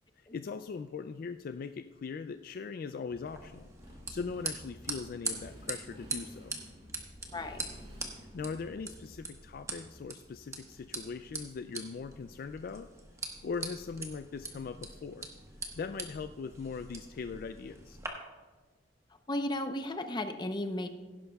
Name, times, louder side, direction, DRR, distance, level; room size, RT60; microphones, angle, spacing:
voice 1, 0.2-3.7 4.1-6.6 8.1-12.9 13.2-15.3 15.8-18.0, left 5 dB, 50° left, 9 dB, 0.3 m, -40 dB
Motorcycle, 3.1-11.7, equal, 40° right, 3.0 m, -53 dB
sound 1, 3.3-18.1, right 3 dB, 15° right, 1.2 m, -43 dB
voice 2, 7.3-7.6 19.3-20.9, left 1 dB, 25° left, 7 dB, 0.7 m, -34 dB
17.0 x 11.0 x 2.3 m, 1.3 s
head